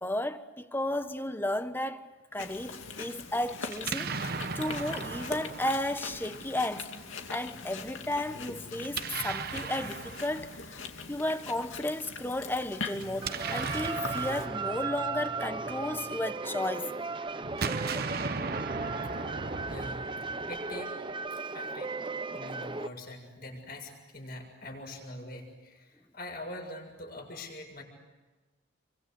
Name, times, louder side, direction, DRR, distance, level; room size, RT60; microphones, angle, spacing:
voice 1, 0.0-2.1 2.3-4.2 4.5-6.9 7.3-10.8 11.1-16.9, left 1 dB, 10° left, 1.2 m, -33 dB
Chewing mastication, 2.4-14.5, left 4 dB, 85° left, 2.5 m, -42 dB
Explosion, 3.7-6.7 8.8-11.0 12.9-16.4 17.4-20.8, right 4 dB, 50° right, 1.0 m, -37 dB
sound 1, 13.2-22.9, right 4 dB, 25° right, 0.9 m, -36 dB
voice 2, 19.6-20.1 20.5-20.9 21.3-21.9 22.3-27.8, left 1 dB, 50° left, 7.0 m, -43 dB
29.5 x 24.5 x 8.1 m
head